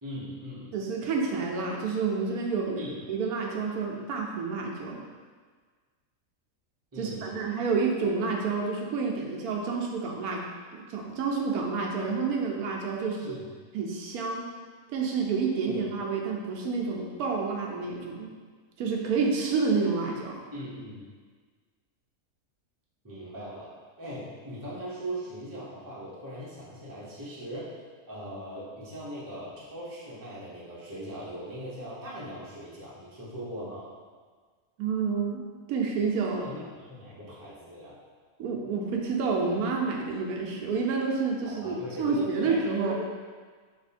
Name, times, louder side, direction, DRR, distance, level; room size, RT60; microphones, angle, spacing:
voice 1, 0.0-0.7 2.8-3.0 6.9-7.6 13.0-13.5 15.7-15.9 20.5-21.1 23.0-23.7 24.0-27.7 28.1-33.9 36.3-38.0 41.4-42.9, equal, 15° right, -8 dB, 0.8 m, -40 dB
voice 2, 0.7-5.0 7.0-13.4 13.7-14.5 14.9-18.3 18.8-20.4 34.8-36.5 38.4-42.9, right 4 dB, 90° right, 0 dB, 1.2 m, -29 dB
3.4 x 3.1 x 4.2 m, 1.5 s
omnidirectional pair, 1.5 m